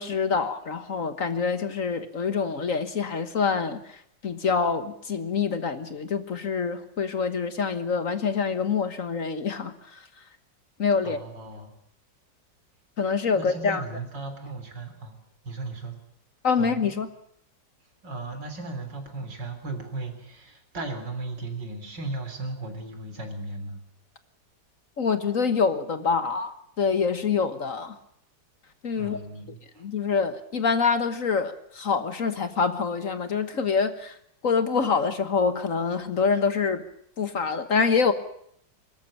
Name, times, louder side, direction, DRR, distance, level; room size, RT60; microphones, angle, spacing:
voice 1, 0.0-10.0 10.8-11.2 13.0-13.8 16.4-17.1 25.0-28.0 28.8-29.2 29.8-34.2 34.4-36.8 37.2-38.1, left 5 dB, 50° left, 11 dB, 1.5 m, -26 dB
voice 2, 11.0-11.7 13.3-15.2 15.4-16.0 16.6-16.9 18.0-23.8 28.9-29.9, right 3 dB, 75° right, 6 dB, 4.3 m, -36 dB
24.5 x 13.5 x 9.9 m, 0.70 s
omnidirectional pair, 1.9 m